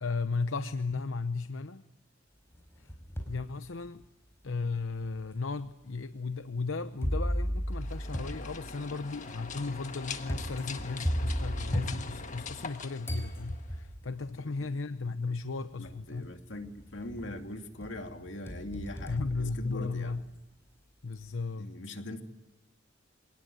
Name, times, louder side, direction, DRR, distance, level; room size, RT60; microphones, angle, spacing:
voice 1, 0.0-1.8 2.8-2.9 3.3-4.0 4.4-16.3 19.1-20.2 21.0-21.7, left 4 dB, 85° left, 10 dB, 0.8 m, -35 dB
sound 1, 2.5-3.4 4.0-4.1 5.0-5.1 7.0-12.7 13.0-14.1 15.2-15.3 15.8-16.3 16.6-17.4 17.8-20.2, equal, 15° left, 4.5 m, -35 dB
sound 2, 7.7-13.9, left 5 dB, 40° left, 1.6 m, -43 dB
voice 2, 14.2-14.7 15.8-20.2 21.5-22.2, left 1 dB, 65° left, 5 dB, 2.8 m, -42 dB
26.0 x 19.0 x 9.4 m, 0.97 s
head